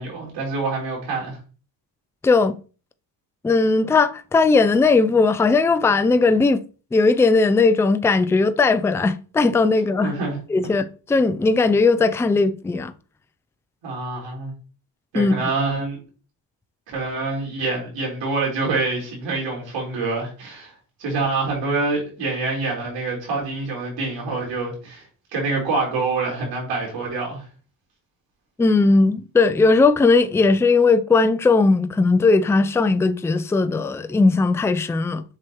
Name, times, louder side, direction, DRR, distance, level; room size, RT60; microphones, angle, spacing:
voice 1, 0.0-1.4 10.0-10.4 13.8-14.5 15.1-16.0 16.9-20.7 21.0-25.1 25.3-27.4, right 3 dB, 85° right, 4.2 m, -26 dB
voice 2, 2.2-2.6 3.4-6.6 6.9-10.1 10.5-12.9 15.1-15.3 28.6-35.2, left 3 dB, 5° left, 0.4 m, -18 dB
7.6 x 6.2 x 3.0 m
cardioid pair, 105°, 43 cm